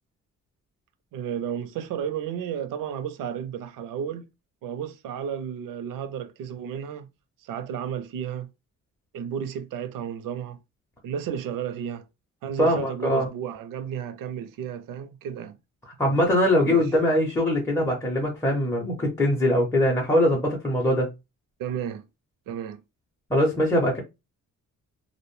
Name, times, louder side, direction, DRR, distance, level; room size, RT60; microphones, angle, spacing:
voice 1, 1.1-4.2 4.6-7.1 7.4-8.5 9.1-10.6 11.0-12.1 12.4-15.6 16.6-16.9 21.6-22.0 22.5-22.8, right 8 dB, 80° right, 0.5 m, -32 dB
voice 2, 12.6-13.3 16.0-21.1 23.3-24.0, left 1 dB, 10° left, 0.5 m, -22 dB
2.5 x 2.1 x 3.0 m
wide cardioid pair, 165°, 32 cm